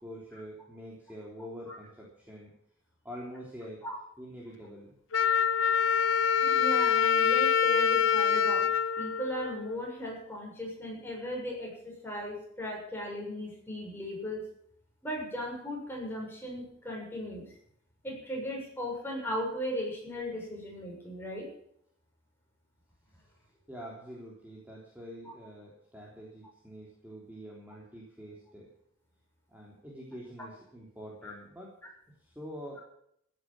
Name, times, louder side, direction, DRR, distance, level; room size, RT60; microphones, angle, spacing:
voice 1, 0.0-2.5 3.0-3.8 4.2-5.0 23.7-28.7 29.5-31.8 32.2-32.8, equal, 10° right, -3 dB, 3.4 m, -45 dB
Wind instrument woodwind instrument, 5.1-9.9, left 7 dB, 75° left, 0.6 m, -25 dB
voice 2, 6.4-8.7 9.0-14.4 15.0-17.5 18.0-21.5 25.3-25.4 31.2-31.3, equal, 10° left, -2 dB, 6.9 m, -37 dB
15.5 x 10.0 x 7.4 m, 0.70 s
head